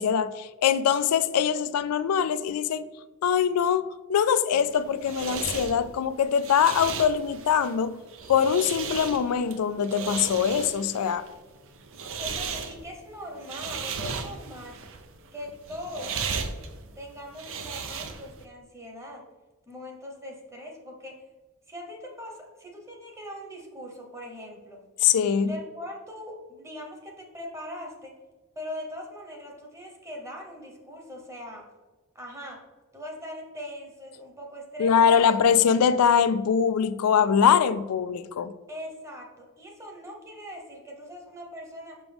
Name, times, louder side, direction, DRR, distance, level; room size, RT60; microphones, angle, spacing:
voice 1, 0.0-2.8 3.2-8.0 8.3-11.2 25.0-25.5 34.8-38.5, left 7 dB, 85° left, 0.4 m, -23 dB
sound 1, 4.6-18.4, right 5 dB, 60° right, 0.6 m, -36 dB
voice 2, 12.2-14.8 15.3-16.3 17.0-19.3 19.7-21.2 21.7-24.8 25.4-28.1 28.5-31.7 32.1-32.6 32.9-35.4 38.7-42.0, left 1 dB, 15° right, 1.1 m, -41 dB
5.8 x 5.4 x 3.5 m
head